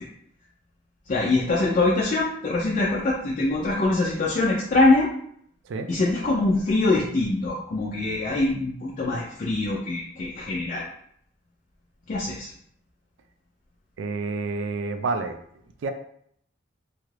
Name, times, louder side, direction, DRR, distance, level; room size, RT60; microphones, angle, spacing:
voice 1, 1.1-5.1 5.9-10.8 12.1-12.5, left 2 dB, 45° left, -5 dB, 0.4 m, -23 dB
voice 2, 14.0-15.3 15.8-15.9, right 3 dB, 75° right, 7 dB, 0.3 m, -28 dB
2.9 x 2.4 x 3.1 m, 0.67 s
head